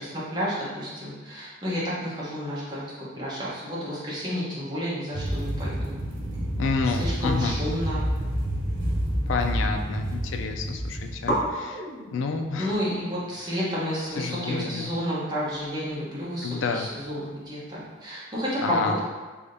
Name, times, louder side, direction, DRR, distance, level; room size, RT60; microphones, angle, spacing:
voice 1, 0.0-5.9 6.8-8.0 12.6-19.0, equal, 20° right, -8 dB, 1.0 m, -31 dB
sound 1, 5.1-11.4, equal, 90° right, 0.8 m, -29 dB
voice 2, 6.6-7.6 9.3-11.8 12.1-12.7 14.2-14.9 16.4-16.9 18.6-19.0, left 4 dB, 85° left, 5 dB, 0.3 m, -29 dB
sound 2, 8.6-9.5 9.8-10.4 10.7-10.8 11.2-18.1, equal, 65° left, 0.9 m, -37 dB
3.5 x 3.3 x 2.6 m, 1.3 s
head